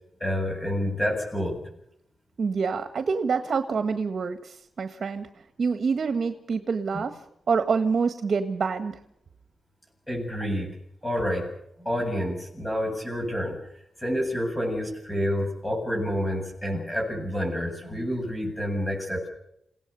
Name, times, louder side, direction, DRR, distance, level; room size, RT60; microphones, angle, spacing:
voice 1, 0.2-1.6 10.1-10.7 11.0-11.5 11.8-13.6 14.0-19.3, equal, 10° left, 1 dB, 7.8 m, -28 dB
voice 2, 2.4-5.3 5.6-7.2 7.5-9.0, right 5 dB, 55° right, 8 dB, 1.6 m, -26 dB
28.5 x 17.5 x 6.9 m, 0.77 s
wide cardioid pair, 130°, 0 cm